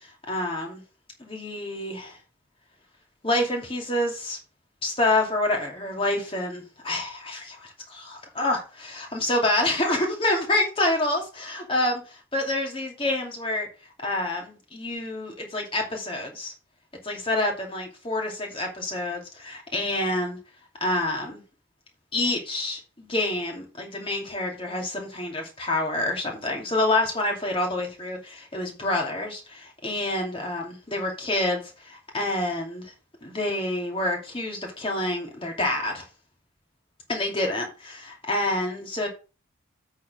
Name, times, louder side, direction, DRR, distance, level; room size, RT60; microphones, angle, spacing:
voice 1, 0.3-0.8 1.2-2.2 3.2-4.4 4.8-13.7 14.0-16.5 17.0-20.4 20.8-21.4 22.1-32.9 33.2-36.1 37.1-39.1, left 1 dB, 25° left, 2.6 m, -27 dB
8.4 x 4.4 x 6.3 m
head